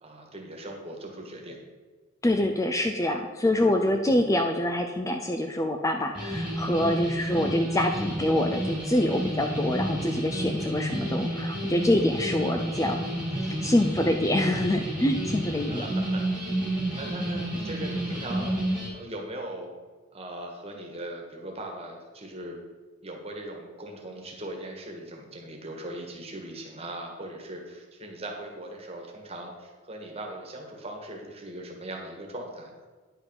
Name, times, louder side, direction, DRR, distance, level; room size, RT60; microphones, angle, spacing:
voice 1, 0.0-1.6 15.7-16.3 16.9-19.7 20.1-22.6 23.0-32.7, right 1 dB, 30° right, 1 dB, 1.5 m, -39 dB
voice 2, 2.2-13.0 13.6-15.8, left 1 dB, 15° left, 4 dB, 0.4 m, -25 dB
sound 1, 6.1-18.9, right 1 dB, 5° right, 2.1 m, -30 dB
9.9 x 5.6 x 5.5 m, 1.4 s
head